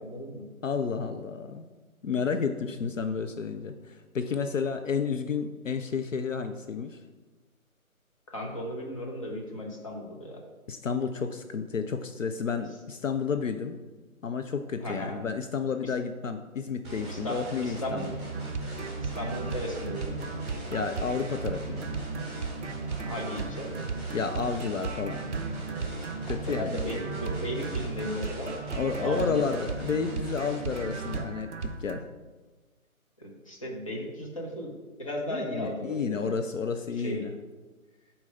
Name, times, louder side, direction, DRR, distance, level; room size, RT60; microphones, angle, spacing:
voice 1, 0.0-0.4 8.3-10.4 14.8-15.2 15.8-15.9 17.1-18.1 19.0-20.2 23.0-23.7 26.2-29.5 33.2-34.7 35.0-36.3 37.0-37.2, equal, 25° left, -1 dB, 0.8 m, -36 dB
voice 2, 0.6-1.6 2.0-7.0 10.7-13.8 14.2-18.2 20.7-21.9 24.1-25.2 26.3-26.8 28.7-32.0 35.3-37.3, left 5 dB, 65° left, 7 dB, 0.5 m, -31 dB
sound 1, 16.8-31.2, right 3 dB, 20° right, 1.6 m, -38 dB
sound 2, 18.3-32.0, right 4 dB, 55° right, 0.6 m, -37 dB
5.0 x 4.3 x 5.6 m, 1.2 s
figure-of-eight pair, 155°, 43 cm